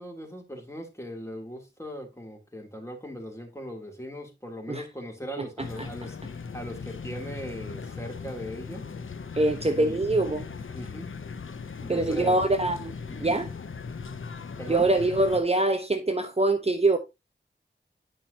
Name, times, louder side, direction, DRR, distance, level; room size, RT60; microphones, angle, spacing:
voice 1, 0.0-8.8 9.8-11.1 11.8-12.5 13.1-13.3 14.6-14.9, equal, 15° left, 3.0 m, -39 dB
sound 1, 5.6-15.4, left 5 dB, 90° left, 0.7 m, -38 dB
voice 2, 9.3-10.5 11.9-12.9 13.2-13.5 14.7-17.0, right 2 dB, 30° right, 0.8 m, -24 dB
10.0 x 5.5 x 2.8 m
wide cardioid pair, 45°, 20 cm